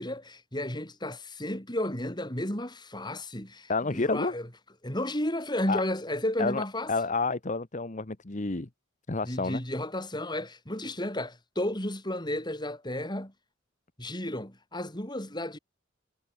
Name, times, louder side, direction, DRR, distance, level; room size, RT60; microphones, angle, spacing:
voice 1, 0.0-4.5 4.8-6.9 9.2-13.3 14.0-15.6, left 1 dB, 20° left, 7.8 m, -33 dB
voice 2, 3.7-4.3 5.7-5.8 6.4-8.7 9.1-9.6, left 3 dB, 40° left, 1.1 m, -29 dB
head